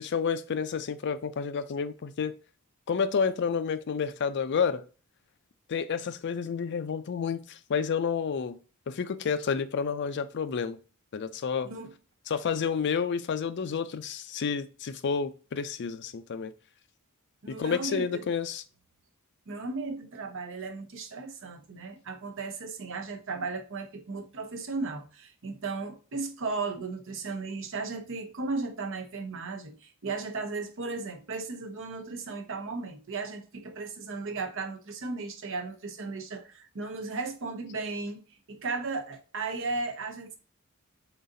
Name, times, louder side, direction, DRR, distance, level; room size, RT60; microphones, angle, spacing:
voice 1, 0.0-2.3 2.9-4.8 5.7-8.6 8.9-10.8 11.1-11.7 12.3-16.5 17.6-18.6, left 6 dB, 50° left, 0.4 m, -30 dB
voice 2, 17.4-18.2 19.5-40.4, right 3 dB, 60° right, 0.8 m, -35 dB
4.0 x 3.8 x 2.6 m
head